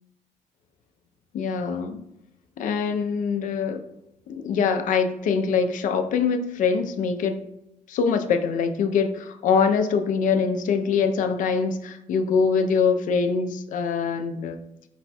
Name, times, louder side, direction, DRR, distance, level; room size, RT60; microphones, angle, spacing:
voice 1, 1.3-2.0 2.6-3.9 4.3-7.4 7.9-14.6, left 5 dB, 65° left, 7 dB, 0.5 m, -23 dB
4.9 x 2.2 x 4.1 m, 0.81 s
cardioid pair, 120°, 14 cm